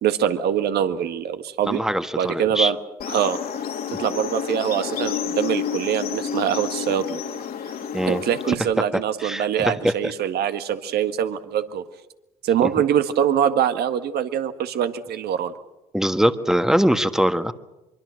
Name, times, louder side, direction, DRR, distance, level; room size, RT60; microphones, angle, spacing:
voice 1, 0.0-1.8 2.2-2.8 3.1-3.4 4.0-7.2 8.1-11.8 12.4-15.5, right 9 dB, 60° right, 10 dB, 1.7 m, -23 dB
voice 2, 1.7-2.7 7.9-8.2 8.8-8.9 9.2-10.0 12.6-12.7 15.9-17.5, equal, 5° right, 10 dB, 1.5 m, -22 dB
sound 1, 3.0-8.5, left 8 dB, 55° left, 2.7 m, -30 dB
24.0 x 23.5 x 6.5 m, 0.97 s
hypercardioid pair, 60°, 19 cm